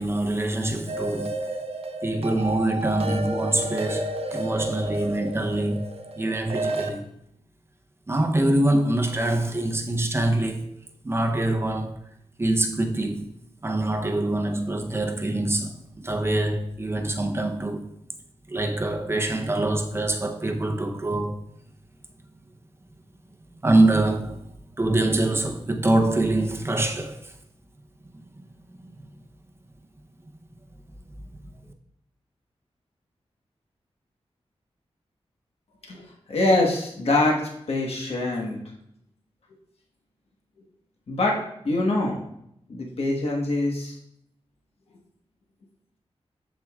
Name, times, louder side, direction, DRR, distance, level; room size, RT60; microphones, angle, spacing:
voice 1, 0.0-1.4 2.0-5.9 6.2-7.1 8.1-10.7 11.0-12.0 12.4-13.3 13.6-18.0 18.5-21.4 23.6-24.5 24.8-27.3 28.3-28.9, right 1 dB, 25° right, 0.8 m, -25 dB
sound 1, 0.9-6.9, right 1 dB, 65° right, 0.7 m, -31 dB
voice 2, 35.9-38.6 41.1-42.2 42.7-44.0, left 2 dB, 65° left, 1.3 m, -24 dB
7.6 x 7.5 x 2.4 m
wide cardioid pair, 135°, 11 cm